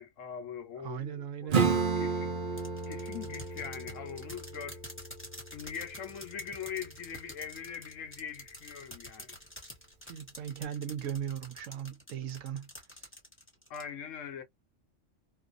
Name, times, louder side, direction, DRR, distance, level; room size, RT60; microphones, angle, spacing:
voice 1, 0.0-2.3 2.9-4.8 5.5-9.4 13.7-14.4, left 7 dB, 75° left, 1.0 m, -42 dB
voice 2, 0.8-1.7 10.1-13.1, right 9 dB, 75° right, 1.0 m, -38 dB
Acoustic guitar / Strum, 1.5-6.7, right 5 dB, 50° right, 0.7 m, -33 dB
sound 1, 2.6-13.8, equal, 10° left, 1.0 m, -48 dB
2.5 x 2.3 x 2.4 m
omnidirectional pair, 1.4 m